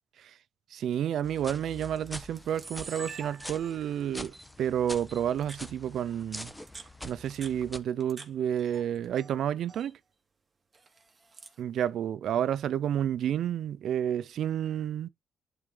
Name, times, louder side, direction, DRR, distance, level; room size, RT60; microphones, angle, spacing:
voice 1, 0.7-6.5 7.0-10.0 11.6-15.1, right 10 dB, 70° right, 0.6 m, -30 dB
sound 1, 1.2-7.8, left 1 dB, 5° left, 1.1 m, -45 dB
Camera, 1.2-1.4 2.1-2.2 2.3-3.9 4.3-4.4 5.1-5.7 6.5-8.3 8.6-9.3 9.6-9.9 10.7-11.6, right 4 dB, 30° right, 2.2 m, -46 dB
11.0 x 4.5 x 3.8 m
cardioid pair, 90°, 0 cm